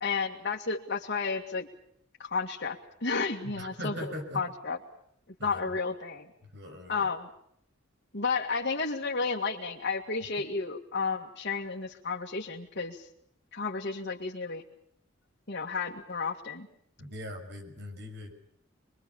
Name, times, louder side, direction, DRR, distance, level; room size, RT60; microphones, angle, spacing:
voice 1, 0.0-1.7 2.2-4.8 5.4-6.3 6.9-7.3 8.1-13.1 13.5-14.6 15.5-16.7, left 4 dB, 55° left, -3 dB, 2.2 m, -32 dB
voice 2, 3.4-4.4 5.4-5.7 6.4-7.1 17.0-18.3, equal, 60° right, 6 dB, 6.4 m, -40 dB
25.5 x 23.0 x 7.1 m, 0.71 s
head